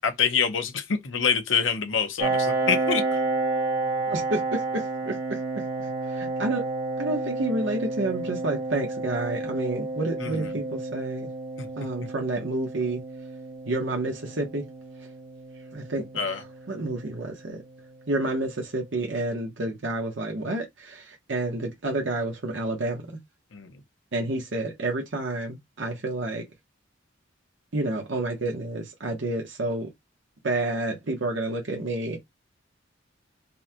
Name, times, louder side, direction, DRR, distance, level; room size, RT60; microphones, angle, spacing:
voice 1, 0.0-3.0 10.2-10.5 11.6-11.7 16.2-16.4 23.5-23.7, left 6 dB, 85° left, 0.9 m, -26 dB
Piano, 2.2-17.5, right 3 dB, 55° right, 1.2 m, -31 dB
voice 2, 4.1-5.4 5.8-6.7 7.0-11.3 11.8-13.0 13.7-14.6 15.7-17.6 18.1-23.0 24.1-26.5 27.7-29.9 30.4-32.2, right 2 dB, 75° right, 1.0 m, -29 dB
5.3 x 2.2 x 2.9 m
head